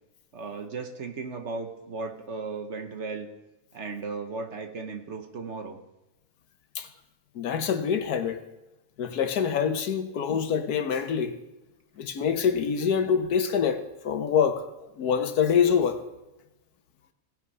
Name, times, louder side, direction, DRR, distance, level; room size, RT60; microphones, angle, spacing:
voice 1, 0.3-3.3 3.7-5.8, right 4 dB, 50° right, 1.2 m, -36 dB
voice 2, 7.3-8.4 9.0-11.4 12.0-14.7 15.0-16.0, left 7 dB, 80° left, 1.5 m, -25 dB
17.5 x 5.8 x 5.5 m
omnidirectional pair, 1.6 m